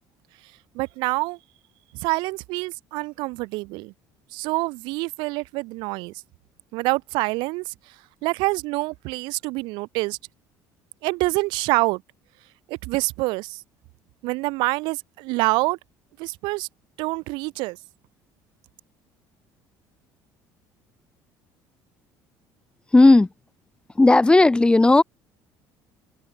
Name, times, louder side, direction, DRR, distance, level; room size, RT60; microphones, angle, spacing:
voice 1, 0.7-1.4 1.9-3.9 4.3-6.1 6.7-7.7 8.2-10.2 11.0-12.0 12.7-13.6 14.2-15.8 16.2-16.7 17.0-17.8, right 24 dB, 80° right, 5.9 m, -26 dB
voice 2, 22.9-23.3 24.0-25.0, left 2 dB, 10° left, 1.9 m, -14 dB
open air
cardioid pair, 110°, 8 cm